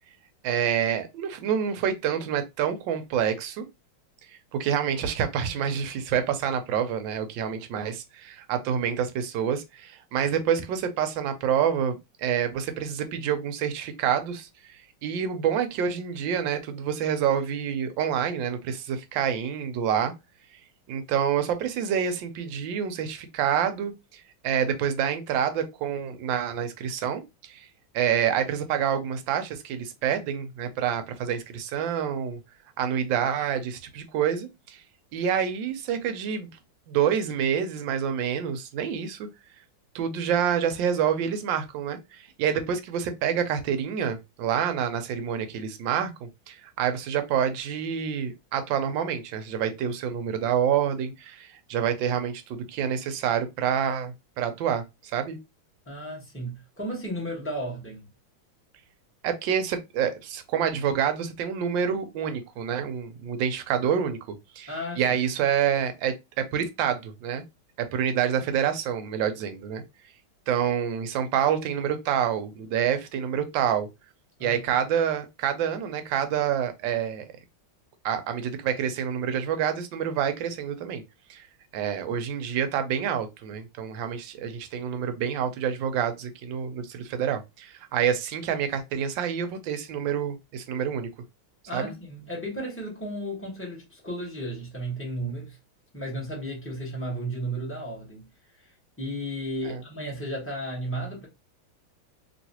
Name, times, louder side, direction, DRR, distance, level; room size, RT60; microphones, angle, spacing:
voice 1, 0.4-3.6 4.5-14.5 15.0-20.1 20.9-27.2 27.5-27.7 27.9-32.4 32.8-34.8 35.1-36.5 36.9-39.3 39.9-54.8 55.1-55.4 59.2-64.2 64.6-67.4 67.9-69.8 70.5-73.9 74.4-77.2 78.0-81.0 81.3-81.5 81.7-91.1 91.7-91.9 99.6-99.8, right 8 dB, 75° right, 1.2 m, -27 dB
voice 2, 55.9-58.1 64.7-65.0 74.4-74.6 91.7-95.6 95.9-98.3 99.0-101.3, right 1 dB, 10° left, 0.9 m, -34 dB
3.1 x 3.0 x 2.8 m
omnidirectional pair, 2.3 m